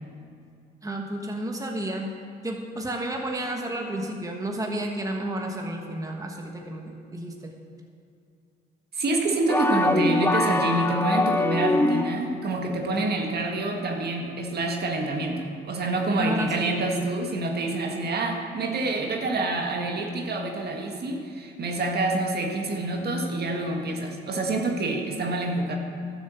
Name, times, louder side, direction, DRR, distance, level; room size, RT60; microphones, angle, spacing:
voice 1, 0.8-2.1 2.4-7.5 16.2-16.7, right 1 dB, 15° right, 2 dB, 1.3 m, -31 dB
voice 2, 8.9-25.7, right 2 dB, 55° right, 2 dB, 1.8 m, -27 dB
sound 1, 9.5-12.4, left 2 dB, 10° left, 0.5 m, -23 dB
12.0 x 7.3 x 7.1 m, 2.4 s
cardioid pair, 90°, 20 cm